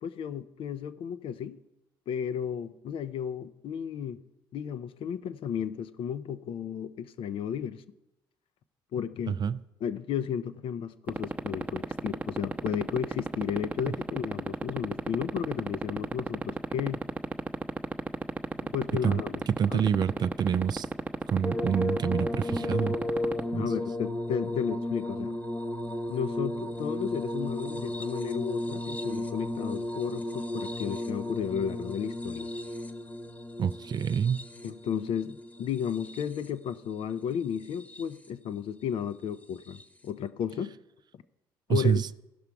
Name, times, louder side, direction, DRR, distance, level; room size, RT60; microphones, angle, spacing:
voice 1, 0.0-1.6 2.1-4.2 4.5-7.8 8.9-9.4 9.8-17.0 18.6-19.4 19.7-19.8 23.6-25.3 26.1-32.5 34.6-40.7 41.7-42.0, left 8 dB, 60° left, 0.6 m, -33 dB
voice 2, 9.3-9.6 19.0-19.2 19.5-20.9 21.3-22.9 23.5-23.6 33.6-34.5 41.7-42.1, right 7 dB, 40° right, 0.4 m, -27 dB
sound 1, 11.1-23.4, right 3 dB, 15° right, 0.8 m, -29 dB
sound 2, 21.4-36.7 37.5-38.3 39.7-39.8, left 1 dB, 15° left, 1.1 m, -34 dB
16.0 x 5.8 x 4.6 m
hypercardioid pair, 55°, 10 cm